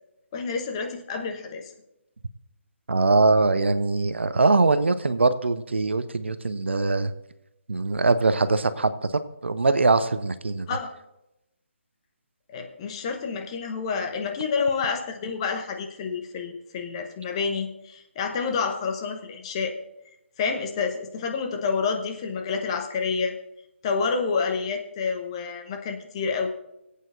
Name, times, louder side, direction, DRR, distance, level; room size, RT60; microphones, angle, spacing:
voice 1, 0.3-1.7 10.7-10.9 12.5-19.8 20.4-23.3 23.8-26.5, left 5 dB, 25° left, 3 dB, 1.0 m, -28 dB
voice 2, 2.9-7.1 7.7-8.9 9.4-10.7, right 3 dB, 60° right, 13 dB, 0.6 m, -22 dB
22.5 x 8.3 x 2.6 m, 0.89 s
figure-of-eight pair, 145°, 7 cm